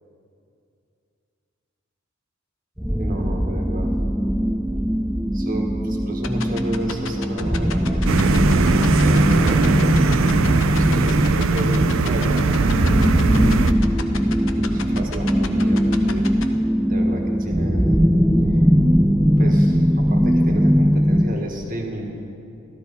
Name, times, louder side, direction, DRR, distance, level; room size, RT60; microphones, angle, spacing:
sound 1, 2.8-21.3, equal, 5° right, 0.4 m, -20 dB
voice 1, 3.0-3.9 5.3-8.2 9.0-10.3 10.7-12.5 14.4-16.2 16.9-17.9 19.4-22.2, right 1 dB, 45° right, 1 dB, 1.6 m, -31 dB
sound 2, 6.2-16.4, left 6 dB, 70° left, 0.8 m, -31 dB
sound 3, 8.1-13.7, right 4 dB, 90° right, 0.5 m, -20 dB
14.0 x 13.0 x 4.2 m, 2.6 s
head